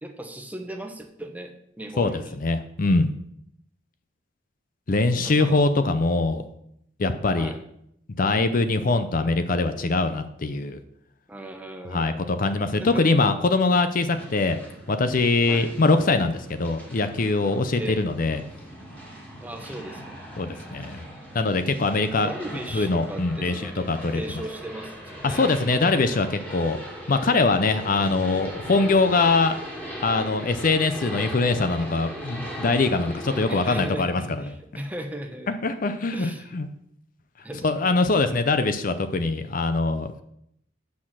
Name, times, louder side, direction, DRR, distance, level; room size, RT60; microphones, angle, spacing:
voice 1, 0.0-2.4 5.2-5.6 7.3-7.6 11.3-12.3 12.8-13.1 15.5-15.7 17.8-18.1 19.4-20.2 22.1-25.4 33.5-35.5 36.1-36.5 37.4-38.0, right 1 dB, 10° right, 4 dB, 0.9 m, -37 dB
voice 2, 2.0-3.1 4.9-6.4 7.0-7.5 8.2-10.8 11.9-14.6 14.9-18.4 20.4-21.0 21.3-22.3 22.7-24.2 25.2-26.8 27.1-29.5 30.0-34.2 35.5-36.7 37.6-40.2, left 3 dB, 45° left, 10 dB, 0.6 m, -23 dB
sound 1, 14.1-33.9, equal, 5° left, 2.3 m, -39 dB
8.7 x 5.9 x 6.2 m, 0.74 s
head